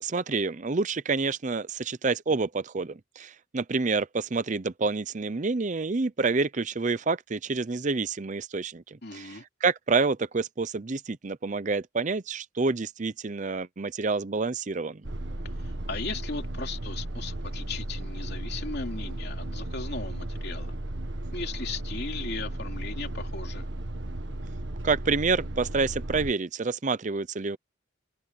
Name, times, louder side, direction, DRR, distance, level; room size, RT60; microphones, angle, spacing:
voice 1, 0.0-15.0 24.8-27.6, right 4 dB, 40° right, 0.6 m, -28 dB
voice 2, 9.0-9.4 15.6-20.7 21.3-23.7, left 3 dB, 55° left, 3.2 m, -37 dB
sound 1, 15.1-26.3, right 1 dB, 60° right, 1.5 m, -35 dB
head